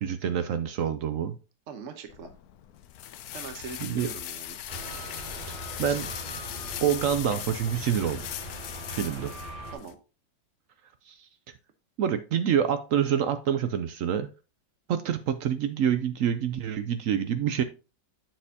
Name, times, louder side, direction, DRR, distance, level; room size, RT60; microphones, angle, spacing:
voice 1, 0.0-1.4 3.8-4.1 5.5-6.1 6.8-8.2 8.9-9.3 11.1-11.3 12.0-14.3 14.9-17.6, right 9 dB, 70° right, 11 dB, 0.7 m, -27 dB
voice 2, 1.7-2.3 3.3-4.6 5.9-6.0 9.7-10.0, right 5 dB, 50° right, 8 dB, 1.1 m, -42 dB
sound 1, 2.1-9.9, left 11 dB, 70° left, 1.0 m, -39 dB
sound 2, 4.7-9.8, right 1 dB, 30° left, 3.3 m, -40 dB
7.7 x 6.5 x 2.7 m, 0.33 s
omnidirectional pair, 1.9 m